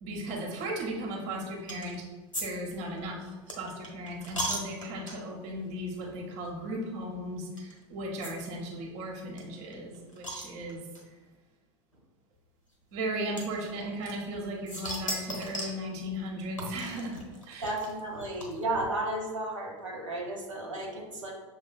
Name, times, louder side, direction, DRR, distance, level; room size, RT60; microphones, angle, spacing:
voice 1, 0.0-2.1 2.4-11.2 12.9-17.2 17.5-17.7, right 1 dB, 45° right, -1 dB, 0.9 m, -36 dB
sound 1, 1.7-2.0 2.3-2.5 2.7-5.4 6.0-6.2 6.4-6.5 7.6-7.7 8.2-8.3 8.6-8.7 8.9-9.0 9.4-11.0 11.9-12.0 13.4-14.4 14.7-15.8 16.6-18.9, equal, 90° left, 0.9 m, -37 dB
voice 2, 17.6-21.3, right 2 dB, 80° right, -3 dB, 0.9 m, -33 dB
6.3 x 3.2 x 2.2 m, 1.2 s
figure-of-eight pair, 80°, 16 cm